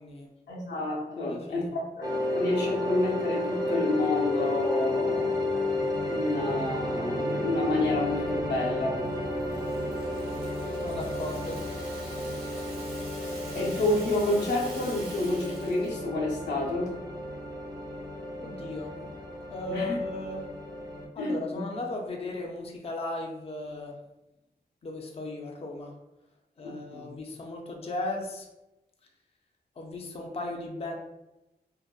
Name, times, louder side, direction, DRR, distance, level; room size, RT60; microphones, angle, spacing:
voice 1, 0.5-2.1 2.3-5.4 6.1-9.0 13.5-16.9 19.7-20.0 21.2-21.6 26.6-27.1, left 2 dB, 85° left, -4 dB, 0.7 m, -29 dB
voice 2, 1.2-1.7 10.8-11.6 18.4-19.0 19.5-20.5 21.1-23.9 24.8-25.9 26.6-28.5 29.8-31.0, left 2 dB, 35° left, 1 dB, 0.4 m, -36 dB
sound 1, 2.0-21.1, left 1 dB, 20° right, 0.6 m, -32 dB
Rattle (instrument), 9.1-16.0, right 2 dB, 65° right, 0.8 m, -47 dB
2.5 x 2.1 x 2.3 m, 0.95 s
cardioid pair, 65°, 17 cm